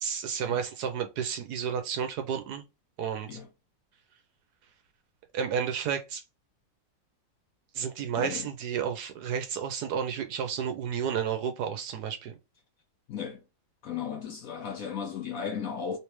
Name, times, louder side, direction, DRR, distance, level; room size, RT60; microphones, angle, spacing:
voice 1, 0.0-2.6 3.0-3.4 5.3-6.2 7.7-12.3, right 7 dB, 70° right, 1.0 m, -31 dB
voice 2, 8.2-8.5 13.1-13.4 13.8-16.0, left 7 dB, 65° left, 0.9 m, -35 dB
3.2 x 3.2 x 3.0 m
omnidirectional pair, 2.0 m